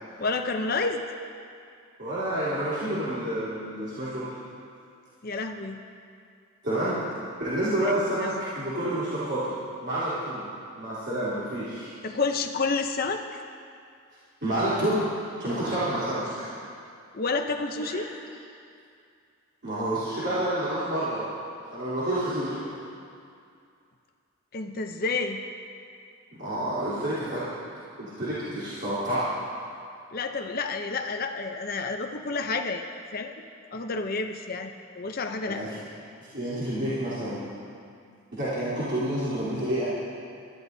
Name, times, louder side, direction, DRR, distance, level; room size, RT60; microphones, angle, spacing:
voice 1, 0.2-1.0 5.2-5.8 7.8-7.9 8.2-8.3 12.0-13.2 17.1-18.1 24.5-25.4 30.1-32.8 33.1-33.3 33.7-35.6, left 3 dB, 45° left, 4 dB, 0.6 m, -29 dB
voice 2, 2.0-4.3 6.6-7.0 7.4-9.5 9.8-10.5 10.8-11.9 14.4-15.0 15.4-16.3 17.8-18.0 19.6-21.3 21.7-22.7 26.3-27.4 28.0-29.2 35.5-35.8 36.3-37.5 38.3-39.9, right 1 dB, 50° right, -13 dB, 3.5 m, -29 dB
22.0 x 13.0 x 2.7 m, 2.4 s
head